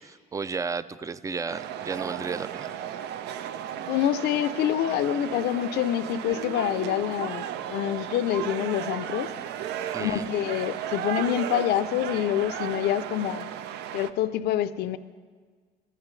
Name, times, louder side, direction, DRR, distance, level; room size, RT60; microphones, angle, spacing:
voice 1, 0.0-2.8 9.9-10.2, right 5 dB, 20° right, 16 dB, 0.3 m, -33 dB
sound 1, 1.5-14.1, right 10 dB, 80° right, 0.5 m, -35 dB
voice 2, 3.9-9.3 10.0-13.5 13.9-15.0, left 11 dB, 75° left, 13 dB, 0.5 m, -26 dB
16.0 x 13.5 x 3.2 m, 1.5 s
cardioid pair, 110°, 17 cm